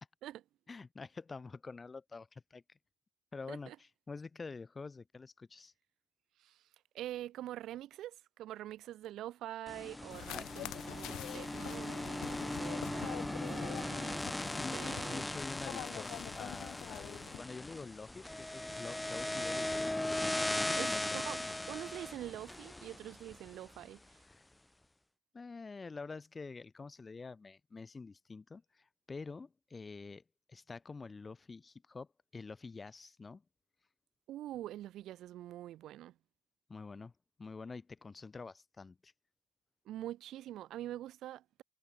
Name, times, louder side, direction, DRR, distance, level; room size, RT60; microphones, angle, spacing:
voice 1, 0.7-2.6 3.3-5.7 10.3-10.5 11.1-11.5 14.6-20.0 20.7-21.1 24.4-24.5 25.3-30.2 30.5-33.4 36.7-37.1 37.4-39.1, left 4 dB, 30° left, 4.1 m, -47 dB
voice 2, 6.9-15.3 20.7-21.4 21.7-24.2 34.3-36.1 39.8-41.6, right 13 dB, 80° right, 2.4 m, -45 dB
sound 1, 9.7-23.8, left 1 dB, 10° left, 1.1 m, -38 dB
sound 2, 10.1-17.4, left 15 dB, 90° left, 1.7 m, -46 dB
cardioid pair, 85°, 0 cm